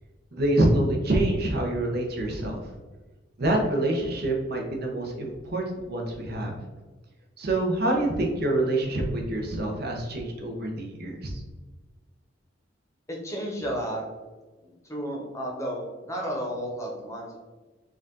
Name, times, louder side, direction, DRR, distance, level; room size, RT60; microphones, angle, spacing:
voice 1, 0.3-2.6 3.4-6.6 7.4-11.4, right 1 dB, 55° right, 1 dB, 0.8 m, -26 dB
voice 2, 13.1-14.0 14.6-17.4, equal, 15° left, -1 dB, 0.9 m, -32 dB
4.8 x 2.5 x 3.8 m, 1.2 s
head